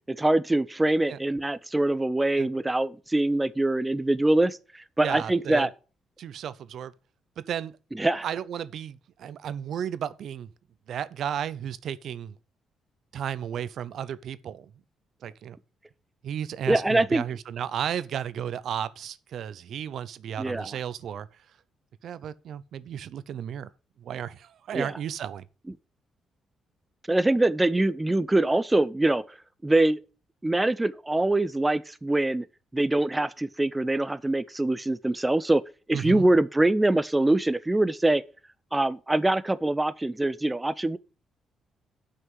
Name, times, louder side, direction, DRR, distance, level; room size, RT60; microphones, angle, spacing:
voice 1, 0.1-5.7 7.9-8.3 16.7-17.2 20.4-20.7 24.7-24.9 27.1-29.2 29.6-30.0 30.4-32.5 32.7-35.6 35.9-38.2 38.7-41.0, right 2 dB, 10° right, 0.5 m, -24 dB
voice 2, 5.0-5.7 6.2-6.9 7.4-7.8 8.2-10.5 10.9-12.3 13.1-14.7 15.2-15.6 16.2-21.3 22.0-23.7 24.0-25.5 35.9-36.3, right 9 dB, 65° right, 0.6 m, -33 dB
7.9 x 5.8 x 7.3 m
cardioid pair, 125°, 0 cm